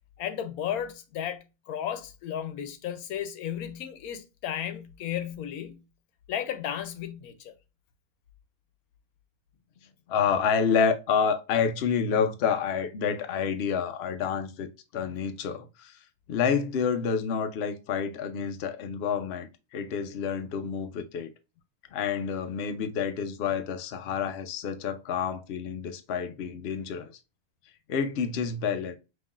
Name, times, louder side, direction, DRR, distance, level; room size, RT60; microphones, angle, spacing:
voice 1, 0.2-5.8 6.3-7.5, left 10 dB, 90° left, 1.2 m, -34 dB
voice 2, 10.1-21.3 21.9-27.1 27.9-29.0, left 6 dB, 60° left, 0.7 m, -28 dB
5.5 x 3.0 x 2.4 m
omnidirectional pair, 1.5 m